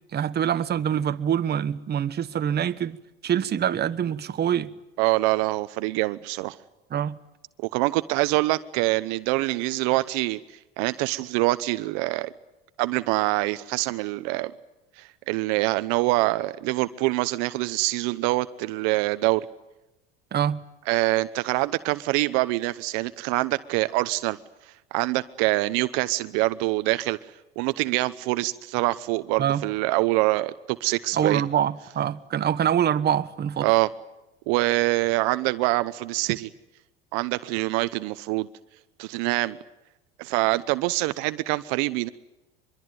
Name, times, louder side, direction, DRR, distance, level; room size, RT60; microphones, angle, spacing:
voice 1, 0.1-3.0 3.2-4.7 6.9-7.2 20.3-20.6 29.4-29.6 31.1-33.7, right 9 dB, 35° right, 1.2 m, -25 dB
voice 2, 5.0-6.6 7.6-10.4 10.8-12.3 12.8-14.5 15.0-19.5 20.9-24.4 24.9-27.2 27.6-31.4 33.6-33.9 34.5-36.5 37.1-38.5 39.0-39.6 40.2-42.1, right 20 dB, 65° right, 0.9 m, -25 dB
24.5 x 22.5 x 9.3 m
hypercardioid pair, 90°, 30 cm